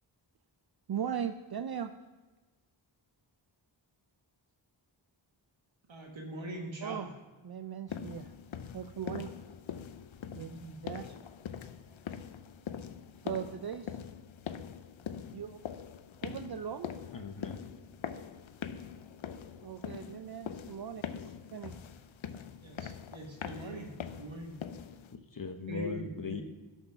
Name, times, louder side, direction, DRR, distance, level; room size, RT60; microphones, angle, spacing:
voice 1, 0.9-1.9 6.8-7.1 7.4-8.3 8.7-9.3 10.3-10.5 10.8-11.1 13.2-14.0 15.3-15.6 16.2-16.9 19.6-21.0 21.5-21.8, right 8 dB, 55° right, 9 dB, 0.5 m, -38 dB
voice 2, 5.9-7.1 9.0-9.2 10.3-10.8 22.6-23.9 24.2-24.6 25.7-26.4, right 1 dB, 75° right, 0 dB, 1.6 m, -42 dB
sound 1, 7.9-25.2, left 8 dB, 80° left, 0.6 m, -43 dB
voice 3, 17.1-17.6 21.1-21.3 25.1-26.4, left 5 dB, 45° left, 6 dB, 0.9 m, -40 dB
11.5 x 4.5 x 5.7 m, 1.2 s
wide cardioid pair, 60°, 47 cm